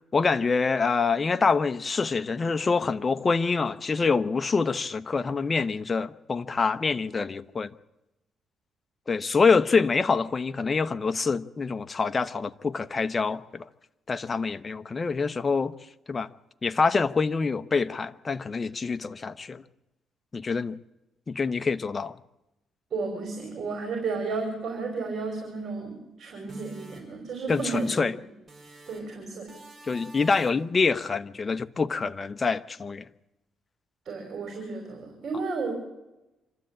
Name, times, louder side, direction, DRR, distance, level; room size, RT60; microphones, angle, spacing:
voice 1, 0.0-7.7 9.1-13.7 14.1-15.7 16.1-16.3 16.6-19.6 20.3-20.8 21.3-22.2 27.5-28.1 29.9-33.1, left 4 dB, 30° left, 0.8 m, -26 dB
voice 2, 22.9-27.9 28.9-29.5 34.1-35.7, right 4 dB, 55° right, 5.2 m, -33 dB
sound 1, 26.5-28.2 28.5-29.2 29.5-30.7, right 2 dB, 30° right, 5.0 m, -48 dB
26.0 x 13.0 x 8.6 m
cardioid pair, 90°, 0 cm